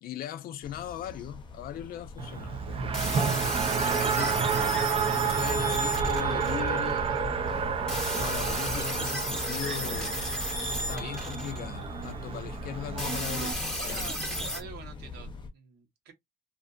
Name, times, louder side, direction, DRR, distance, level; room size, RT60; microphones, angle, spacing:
voice 1, 0.0-3.0 3.8-4.5 5.0-7.1 8.1-10.2 10.7-14.1, left 11 dB, 60° left, 0.4 m, -39 dB
sound 1, 0.6-15.5, left 3 dB, 30° left, 0.7 m, -42 dB
Race car auto racing, 2.2-13.5, right 6 dB, 35° right, 0.4 m, -30 dB
sound 2, 2.9-7.2 7.9-12.1 13.0-14.6, equal, 5° left, 0.9 m, -34 dB
voice 2, 13.7-16.1, right 6 dB, 75° right, 1.0 m, -46 dB
2.5 x 2.5 x 2.3 m
cardioid pair, 110°, 17 cm